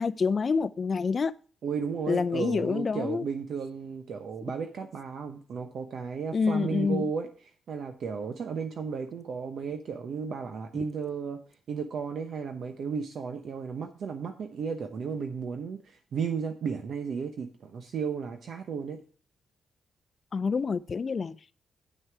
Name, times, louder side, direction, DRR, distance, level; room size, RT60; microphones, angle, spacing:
voice 1, 0.0-1.3 2.1-3.3 6.3-7.1 20.3-21.4, left 5 dB, 35° left, 0.5 m, -27 dB
voice 2, 1.6-7.3 7.7-11.4 11.7-19.0, right 6 dB, 60° right, 0.9 m, -34 dB
9.5 x 6.3 x 4.7 m
cardioid pair, 130°, 0 cm